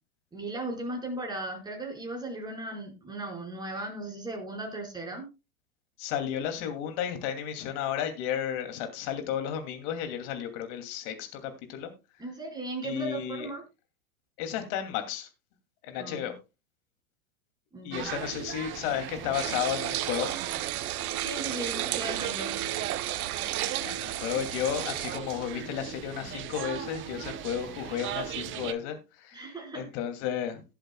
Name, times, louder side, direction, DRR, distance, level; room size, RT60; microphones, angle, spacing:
voice 1, 0.3-5.3 12.2-13.6 16.0-16.3 17.7-18.1 21.2-22.5 29.3-29.8, right 2 dB, 10° right, 4.7 m, -37 dB
voice 2, 6.0-11.9 12.8-13.5 14.4-15.3 15.8-16.3 17.8-20.3 23.8-30.6, left 9 dB, 50° left, 2.6 m, -33 dB
sound 1, 17.9-28.7, right 10 dB, 25° right, 0.8 m, -38 dB
sound 2, 19.3-25.2, right 14 dB, 75° right, 0.8 m, -33 dB
18.0 x 7.8 x 2.2 m
hypercardioid pair, 120°, 44 cm